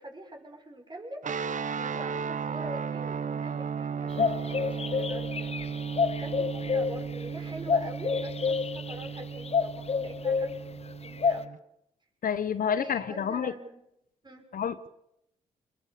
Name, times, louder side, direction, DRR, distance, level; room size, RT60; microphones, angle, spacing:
voice 1, 0.0-5.5 6.0-11.5 12.8-13.8 14.2-14.5, right 1 dB, 30° right, 2 dB, 6.3 m, -44 dB
sound 1, 1.2-11.6, right 6 dB, 55° right, 0.9 m, -35 dB
sound 2, 4.1-11.5, left 5 dB, 40° left, 0.9 m, -29 dB
voice 2, 12.2-13.5 14.5-14.9, left 7 dB, 65° left, 14 dB, 1.1 m, -29 dB
22.5 x 21.5 x 6.8 m, 0.82 s
supercardioid pair, 45°, 16 cm